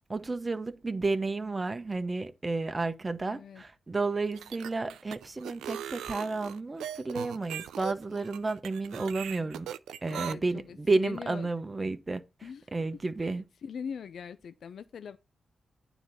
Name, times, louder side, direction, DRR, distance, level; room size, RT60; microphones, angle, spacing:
voice 1, 0.1-9.7 10.0-13.4, right 3 dB, 30° right, 1.0 m, -32 dB
voice 2, 3.3-3.6 10.1-11.5 12.4-12.7 13.2-13.4 13.6-15.2, left 7 dB, 75° left, 0.5 m, -42 dB
sound 1, 4.2-10.3, right 10 dB, 90° right, 0.4 m, -39 dB
9.2 x 4.0 x 6.9 m
supercardioid pair, 50°, 0 cm